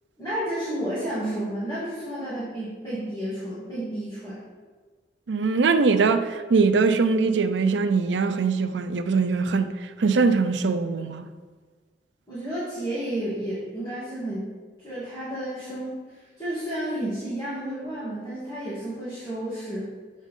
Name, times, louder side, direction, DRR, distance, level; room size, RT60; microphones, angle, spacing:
voice 1, 0.2-4.4 12.3-14.5 14.8-19.9, right 1 dB, 25° left, 2.3 m, -31 dB
voice 2, 5.3-9.7 10.0-11.3, right 4 dB, 85° right, 0.5 m, -22 dB
7.3 x 6.4 x 3.7 m
head